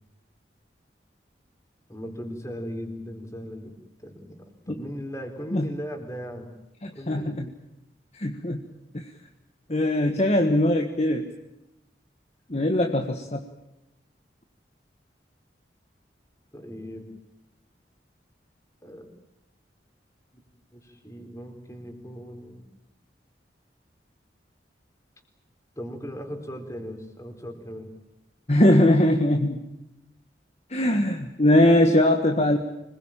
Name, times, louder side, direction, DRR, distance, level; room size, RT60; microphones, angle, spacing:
voice 1, 1.9-3.7 4.0-6.5 6.9-7.4 16.5-17.1 18.8-19.1 20.7-22.6 25.8-27.9, equal, 15° left, 5 dB, 4.3 m, -38 dB
voice 2, 6.8-7.4 8.2-8.6 8.9-9.0 9.7-11.2 12.5-13.4 28.5-29.6 30.7-32.6, left 1 dB, 35° left, 5 dB, 1.5 m, -21 dB
25.5 x 21.0 x 9.0 m, 0.88 s
head